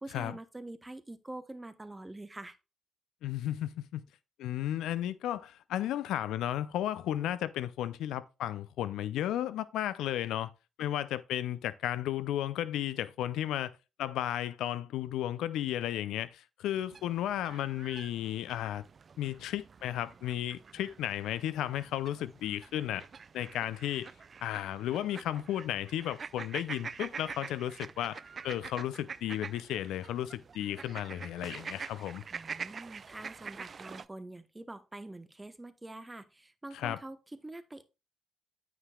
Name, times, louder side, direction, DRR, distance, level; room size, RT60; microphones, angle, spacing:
voice 1, 0.0-2.6 32.3-37.9, right 2 dB, 20° right, 0.9 m, -45 dB
voice 2, 3.2-4.0 4.4-10.5 10.8-13.7 14.0-18.8 19.2-23.1 23.3-24.1 24.4-32.2 36.7-37.0, left 12 dB, 75° left, 0.4 m, -34 dB
sound 1, 16.7-34.1, right 5 dB, 50° right, 0.3 m, -46 dB
9.1 x 5.9 x 2.3 m
hypercardioid pair, 50°, 0 cm